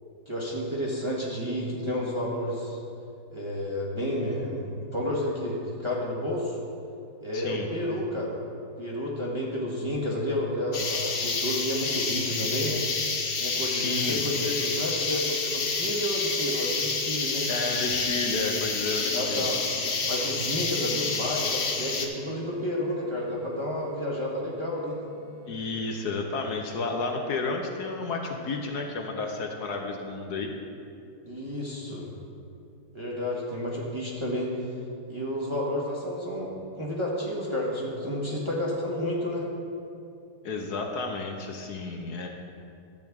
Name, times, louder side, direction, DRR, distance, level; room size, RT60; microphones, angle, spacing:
voice 1, 0.3-2.8 3.3-6.6 7.2-8.3 8.8-12.8 13.4-17.5 19.1-25.0 31.2-32.1 32.9-34.7 35.1-39.5, left 1 dB, 20° right, -4 dB, 1.1 m, -31 dB
voice 2, 7.3-7.7 13.6-14.2 17.5-19.5 25.5-30.5 40.4-42.3, left 3 dB, 65° left, 2 dB, 1.2 m, -31 dB
sound 1, 10.7-22.1, left 4 dB, 45° left, 0.8 m, -29 dB
sound 2, 20.8-25.8, right 5 dB, 65° right, 2.1 m, -47 dB
12.5 x 8.3 x 3.5 m, 2.6 s
omnidirectional pair, 1.9 m